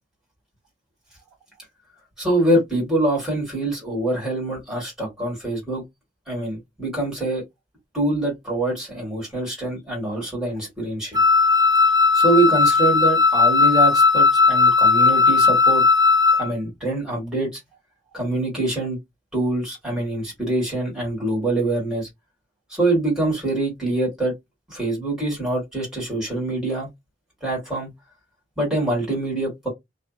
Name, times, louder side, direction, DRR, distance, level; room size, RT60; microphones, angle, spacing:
voice 1, 2.2-5.8 6.3-7.4 7.9-11.2 12.1-15.8 16.4-17.6 18.1-19.0 19.3-22.1 22.7-24.3 24.7-26.9 27.4-27.9 28.6-29.7, right 2 dB, 5° right, 1.5 m, -24 dB
Wind instrument woodwind instrument, 11.1-16.5, left 4 dB, 20° right, 0.5 m, -16 dB
2.6 x 2.4 x 2.4 m
head